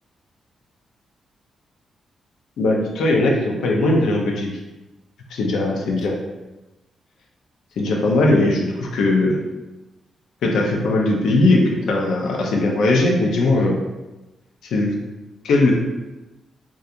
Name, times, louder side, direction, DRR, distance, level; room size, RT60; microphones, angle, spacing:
voice 1, 2.6-4.5 5.3-6.1 7.8-9.4 10.4-13.8 14.7-14.9 15.4-15.7, left 2 dB, 85° left, 0 dB, 0.5 m, -19 dB
2.4 x 2.3 x 2.7 m, 1.1 s
cardioid pair, 125°, 0 cm